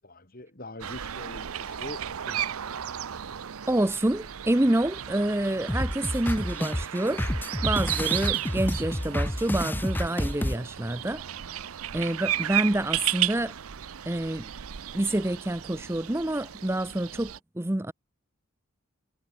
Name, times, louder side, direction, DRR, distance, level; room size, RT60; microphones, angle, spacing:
voice 1, 0.0-2.5, left 1 dB, 40° left, 2.7 m, -43 dB
sound 1, 0.8-17.4, right 12 dB, 80° right, 0.6 m, -34 dB
voice 2, 3.7-7.3 7.6-11.2 11.9-13.6 14.1-14.5 14.9-17.9, right 1 dB, 10° right, 0.6 m, -27 dB
sound 2, 5.7-10.6, left 1 dB, 10° left, 0.9 m, -29 dB
head